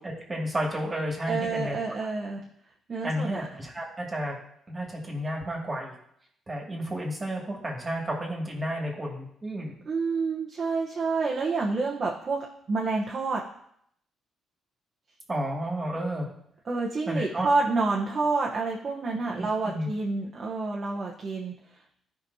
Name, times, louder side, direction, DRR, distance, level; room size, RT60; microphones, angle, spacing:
voice 1, 0.0-1.8 3.0-4.3 4.7-5.9 6.5-9.7 15.3-16.3 17.1-17.5 19.4-19.9, equal, 25° right, -2 dB, 2.3 m, -31 dB
voice 2, 1.3-2.5 2.9-3.5 9.8-13.5 16.7-21.5, right 3 dB, 45° right, -2 dB, 1.0 m, -28 dB
13.0 x 5.1 x 2.8 m, 0.70 s
cardioid pair, 90°, 0 cm